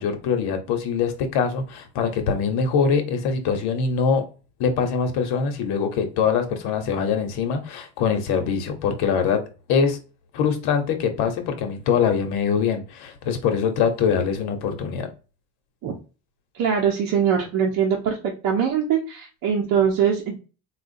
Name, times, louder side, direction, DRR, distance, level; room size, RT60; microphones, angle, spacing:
voice 1, 0.0-4.2 4.6-9.4 9.7-10.0 10.3-15.1, left 6 dB, 85° left, 1.0 m, -23 dB
voice 2, 16.5-18.2 18.4-20.4, right 7 dB, 60° right, 0.9 m, -22 dB
4.3 x 2.4 x 2.5 m
cardioid pair, 180°, 38 cm